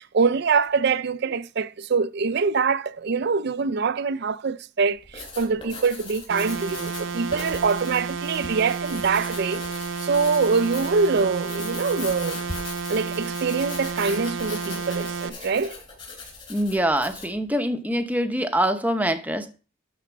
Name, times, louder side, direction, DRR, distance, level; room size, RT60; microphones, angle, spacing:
voice 1, 0.0-9.6 10.0-12.4 12.9-15.8, right 5 dB, 55° right, 0.4 m, -24 dB
Writing, 5.0-17.4, left 3 dB, 30° left, 3.8 m, -40 dB
sound 1, 6.3-15.3, right 5 dB, 80° right, 0.8 m, -31 dB
voice 2, 16.5-19.5, equal, 10° right, 0.9 m, -24 dB
12.0 x 4.4 x 6.0 m
head